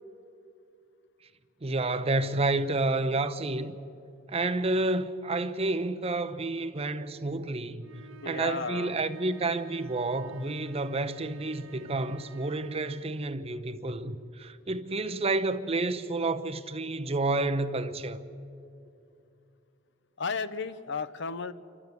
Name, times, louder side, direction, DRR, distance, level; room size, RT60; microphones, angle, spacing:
voice 1, 1.6-3.8 4.3-18.2, right 2 dB, 30° right, 0.8 m, -30 dB
sound 1, 7.8-13.2, right 6 dB, 90° right, 0.9 m, -51 dB
voice 2, 8.2-9.0 20.2-21.5, left 4 dB, 65° left, 0.8 m, -34 dB
28.5 x 12.5 x 8.2 m
head